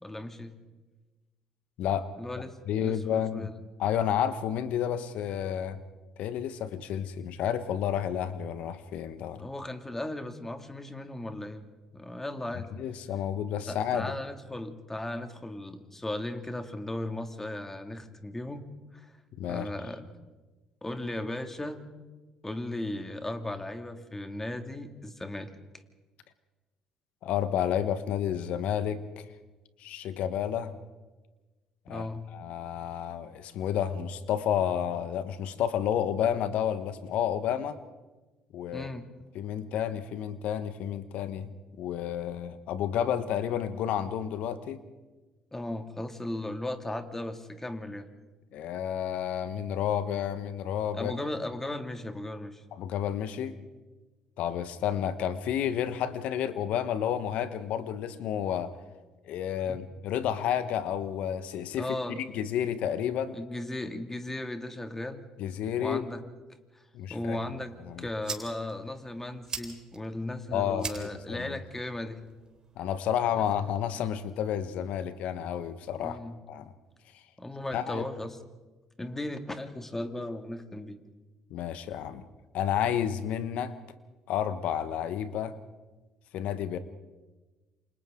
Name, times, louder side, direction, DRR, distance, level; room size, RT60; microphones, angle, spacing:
voice 1, 0.0-0.5 2.2-3.5 9.4-11.7 11.9-12.7 13.7-18.6 18.9-19.1 19.5-20.1 20.8-21.8 22.4-25.5 31.9-32.3 38.7-39.1 45.5-48.1 50.9-52.6 59.7-59.8 61.8-62.2 63.3-65.2 65.7-66.2 66.7-66.8 67.1-72.3 73.4-73.5 76.0-76.4 77.4-78.4 79.0-81.0, left 1 dB, 15° left, 7 dB, 2.5 m, -36 dB
voice 2, 1.8-2.1 2.7-3.5 3.8-5.8 6.2-9.5 12.7-14.1 19.4-19.7 27.2-29.3 29.8-30.8 31.9-37.8 38.5-38.9 39.3-41.5 41.8-44.8 48.5-51.1 52.7-53.6 54.4-58.7 59.2-63.4 65.4-66.0 66.9-67.4 67.9-68.1 70.5-71.6 72.8-76.2 76.5-76.7 77.1-77.2 77.7-78.0 81.5-82.2 82.5-83.7 84.3-85.5 86.3-86.8, left 9 dB, 70° left, 12 dB, 1.4 m, -31 dB
sound 1, 67.6-73.6, right 4 dB, 35° right, 3.9 m, -44 dB
28.5 x 26.5 x 3.9 m, 1.2 s
hypercardioid pair, 60°, 2 cm